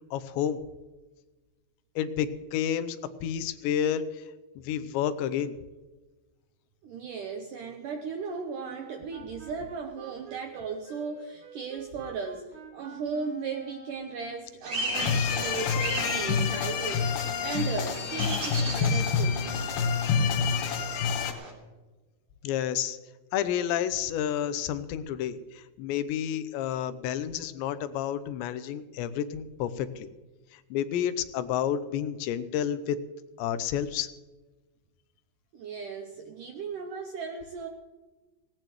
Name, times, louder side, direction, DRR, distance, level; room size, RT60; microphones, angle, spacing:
voice 1, 0.1-0.6 2.0-4.2 4.6-5.6 15.1-15.3 22.4-23.0 23.3-30.1 30.5-33.0 33.4-34.1, left 9 dB, 85° left, 12 dB, 3.0 m, -30 dB
voice 2, 6.8-19.5 35.5-37.7, right 5 dB, 80° right, 4 dB, 1.9 m, -36 dB
Wind instrument woodwind instrument, 8.5-14.6, right 2 dB, 55° right, 1.6 m, -48 dB
sound 1, 14.6-21.5, right 1 dB, 40° right, 4.4 m, -37 dB
sound 2, 14.9-21.3, left 6 dB, 70° left, 3.0 m, -27 dB
18.5 x 18.0 x 3.1 m, 1.2 s
omnidirectional pair, 5.1 m